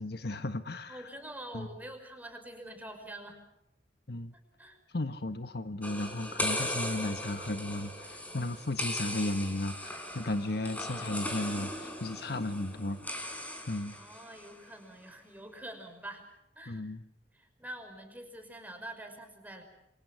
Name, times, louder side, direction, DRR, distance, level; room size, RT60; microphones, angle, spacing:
voice 1, 0.0-1.0 1.5-1.7 4.1-4.3 4.9-13.2 13.7-14.0 16.7-17.0, left 2 dB, 65° left, 9 dB, 1.3 m, -35 dB
voice 2, 0.9-3.4 4.6-4.8 10.3-11.1 13.9-16.3 16.6-16.9 17.3-19.6, right 1 dB, 10° right, 5 dB, 5.6 m, -46 dB
sound 1, 5.8-14.5, left 1 dB, 10° left, 4.9 m, -38 dB
28.5 x 25.5 x 6.0 m, 0.83 s
head